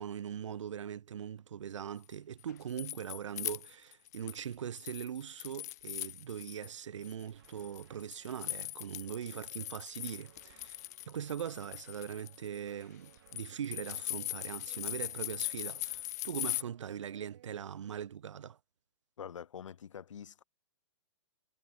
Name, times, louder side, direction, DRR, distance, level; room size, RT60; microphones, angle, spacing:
voice 1, 0.0-18.6, right 8 dB, 70° right, 1.7 m, -41 dB
sound 1, 2.4-4.4 4.8-6.7 7.0-16.6, left 15 dB, 30° left, 0.7 m, -40 dB
sound 2, 7.3-18.0, right 12 dB, 45° right, 4.2 m, -64 dB
voice 2, 19.2-20.4, left 8 dB, 80° left, 2.1 m, -46 dB
hypercardioid pair, 170°, 16 cm